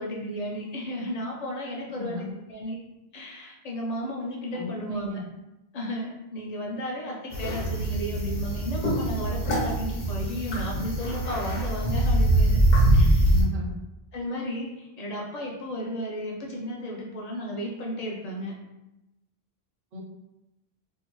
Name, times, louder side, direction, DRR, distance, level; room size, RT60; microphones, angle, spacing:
voice 1, 0.0-2.8 3.1-5.1 5.7-12.6 12.9-13.3 14.1-18.5, equal, 50° left, -2 dB, 0.5 m, -34 dB
voice 2, 2.0-2.3 4.5-5.2 13.2-13.7 19.9-20.0, left 2 dB, 60° right, 0 dB, 0.6 m, -34 dB
sound 1, 7.3-13.4, right 1 dB, 65° left, 1.0 m, -23 dB
2.6 x 2.1 x 2.9 m, 0.94 s
omnidirectional pair, 1.1 m